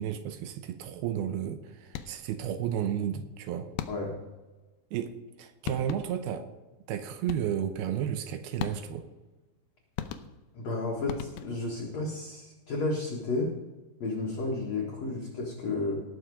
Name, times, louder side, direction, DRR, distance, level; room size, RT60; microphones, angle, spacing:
voice 1, 0.0-3.7 4.9-6.5 6.9-9.0, right 9 dB, 80° right, 9 dB, 2.6 m, -33 dB
sound 1, 1.9-2.4 3.8-4.3 5.3-5.4 5.7-6.3 7.3-7.7 8.6-9.1 10.0-10.6 11.1-11.8, left 10 dB, 80° left, 2.4 m, -38 dB
voice 2, 10.5-13.6 14.0-16.0, left 2 dB, 50° left, -3 dB, 2.3 m, -32 dB
18.5 x 6.6 x 4.8 m, 1.2 s
omnidirectional pair, 4.7 m